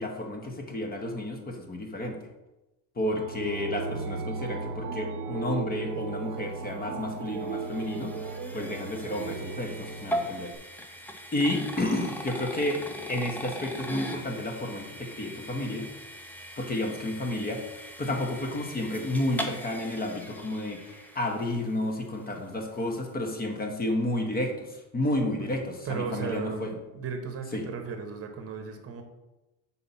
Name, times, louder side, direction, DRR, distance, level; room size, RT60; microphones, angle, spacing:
voice 1, 0.0-2.2 3.0-8.3 8.5-10.5 11.3-12.8 13.1-15.9 16.6-17.6 18.0-26.7 27.5-27.6, left 1 dB, 20° left, 3 dB, 1.0 m, -31 dB
sound 1, 3.0-10.6, right 4 dB, 85° right, 0.7 m, -36 dB
sound 2, 6.6-21.8, equal, 5° left, 0.4 m, -40 dB
voice 2, 25.8-29.0, right 5 dB, 30° right, 6 dB, 1.1 m, -35 dB
5.5 x 4.2 x 5.6 m, 1.0 s
cardioid pair, 135°, 44 cm